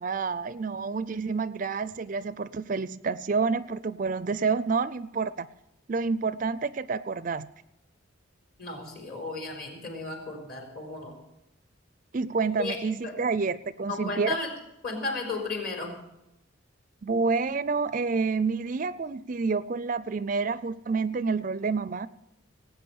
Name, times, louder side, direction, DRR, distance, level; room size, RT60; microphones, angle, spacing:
voice 1, 0.0-5.5 5.9-7.5 12.1-14.4 17.0-22.1, right 4 dB, 40° right, 17 dB, 0.4 m, -28 dB
voice 2, 8.6-11.2 12.6-12.8 13.0-13.2 13.9-14.5 14.8-16.0, left 3 dB, 45° left, 3 dB, 4.0 m, -34 dB
18.5 x 8.9 x 7.1 m, 0.89 s
head